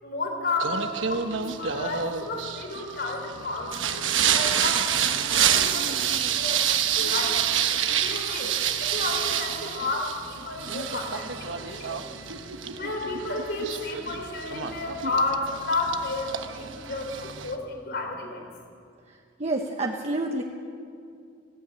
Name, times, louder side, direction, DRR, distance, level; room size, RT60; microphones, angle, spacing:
voice 1, 0.0-4.0 4.3-6.6 7.0-7.4 7.9-12.1 12.8-18.4, left 2 dB, 55° left, 3 dB, 3.8 m, -32 dB
Singing, 0.6-17.5, right 8 dB, 85° right, 1.2 m, -28 dB
voice 2, 19.4-20.4, right 2 dB, 35° right, 2 dB, 1.0 m, -28 dB
18.5 x 16.0 x 8.9 m, 2.4 s
head